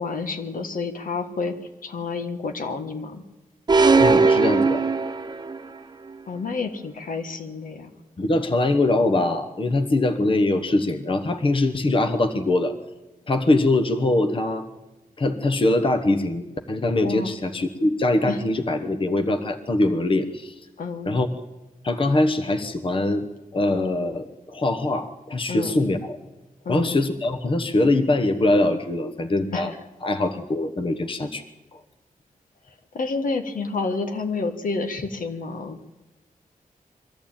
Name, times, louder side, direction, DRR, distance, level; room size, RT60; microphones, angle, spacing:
voice 1, 0.0-1.5 1.8-3.2 6.3-7.9 17.0-17.3 18.3-18.4 20.8-21.1 25.5-25.8 26.7-26.9 29.5-29.8 32.9-35.8, left 4 dB, 75° left, 6 dB, 1.7 m, -29 dB
sound 1, 3.7-5.7, right 4 dB, 30° right, 0.8 m, -18 dB
voice 2, 4.0-4.8 8.2-12.7 13.3-14.7 15.2-20.6 21.0-21.3 21.8-23.3 23.5-26.2 26.7-29.7 30.0-31.4 31.7-31.8, left 2 dB, 40° left, 8 dB, 1.2 m, -22 dB
22.5 x 14.0 x 8.9 m, 1.1 s
wide cardioid pair, 125°, 14 cm